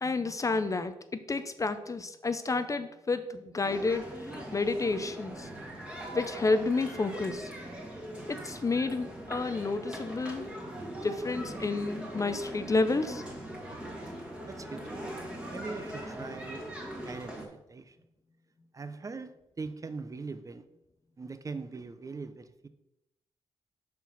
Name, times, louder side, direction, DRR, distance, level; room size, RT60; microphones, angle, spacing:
voice 1, 0.0-5.5 6.1-7.5 8.3-10.5 11.0-13.2, left 3 dB, 30° left, 11 dB, 0.5 m, -30 dB
sound 1, 3.6-17.5, right 1 dB, 10° right, 2.0 m, -41 dB
voice 2, 14.5-15.2 15.5-16.7 17.0-18.0 18.7-20.7 21.2-22.7, right 4 dB, 30° right, 11 dB, 0.7 m, -41 dB
6.0 x 4.6 x 5.6 m, 0.88 s
cardioid pair, 80°, 11 cm